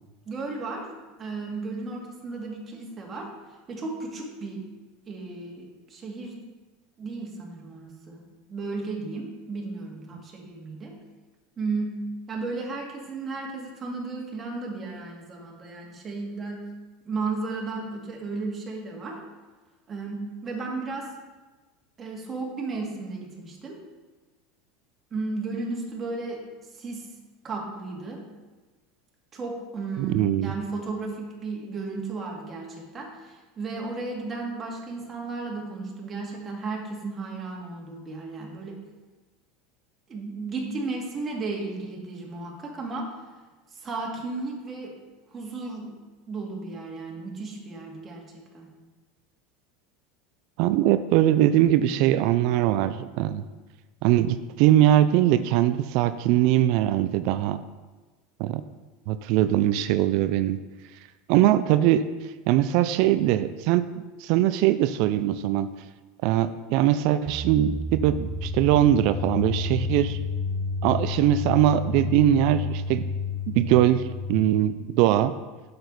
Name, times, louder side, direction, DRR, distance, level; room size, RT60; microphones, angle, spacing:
voice 1, 0.3-0.9 1.2-3.3 3.7-4.6 5.1-6.4 7.0-8.2 8.5-10.9 11.6-12.0 12.3-16.7 17.1-19.2 19.9-21.1 22.0-23.8 25.1-26.4 26.7-27.1 27.4-28.2 29.3-38.8 40.1-43.1 43.7-45.0 45.3-45.9 46.3-48.2 48.5-48.7, right 3 dB, 30° right, -1 dB, 2.3 m, -34 dB
voice 2, 30.0-30.5 50.6-53.5 54.0-57.6 58.4-58.6 59.1-60.6 61.3-62.0 62.5-63.9 64.2-65.7 66.2-70.2 70.8-73.1 73.5-75.3, right 12 dB, 60° right, 13 dB, 0.4 m, -21 dB
sound 1, 67.3-75.0, left 3 dB, 30° left, 1.4 m, -31 dB
7.8 x 6.9 x 4.1 m, 1.2 s
hypercardioid pair, 90°, 0 cm